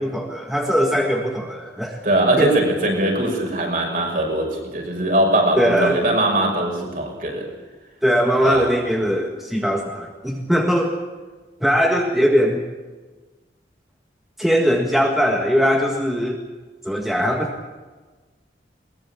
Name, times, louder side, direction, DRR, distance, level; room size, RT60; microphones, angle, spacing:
voice 1, 0.0-2.0 2.4-2.5 5.6-6.0 8.0-11.1 11.6-12.6 14.4-16.4 16.8-17.5, equal, ahead, 1 dB, 1.7 m, -20 dB
voice 2, 2.0-7.5 8.4-8.7, right 1 dB, 45° right, 2 dB, 6.0 m, -21 dB
21.5 x 21.0 x 7.2 m, 1.3 s
head